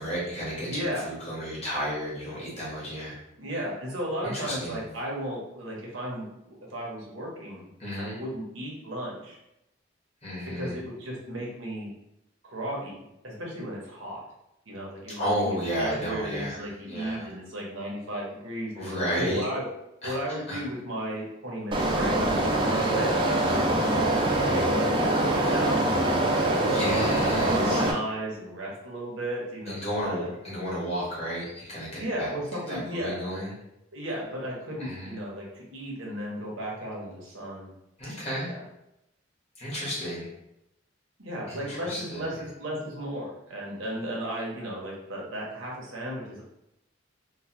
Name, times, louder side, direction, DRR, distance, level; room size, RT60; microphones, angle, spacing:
voice 1, 0.0-0.8 1.0-3.1 4.2-4.8 7.8-8.2 10.2-10.8 15.2-16.6 16.9-17.3 18.8-19.4 20.0-20.6 22.6-23.0 26.7-27.8 29.7-32.3 32.7-33.5 34.8-35.1 38.0-38.5 39.6-40.3 41.5-42.3, equal, 30° left, -7 dB, 1.2 m, -32 dB
voice 2, 0.7-1.1 3.4-7.7 8.0-9.4 10.5-11.9 12.4-14.2 14.7-19.6 20.0-22.2 22.7-26.5 27.1-30.3 32.0-33.2 33.9-37.7 38.4-38.6 41.2-46.4, right 1 dB, 75° right, -3 dB, 0.9 m, -35 dB
sound 1, 21.7-27.9, right 1 dB, 25° right, 0.3 m, -24 dB
3.1 x 2.2 x 2.9 m, 0.86 s
head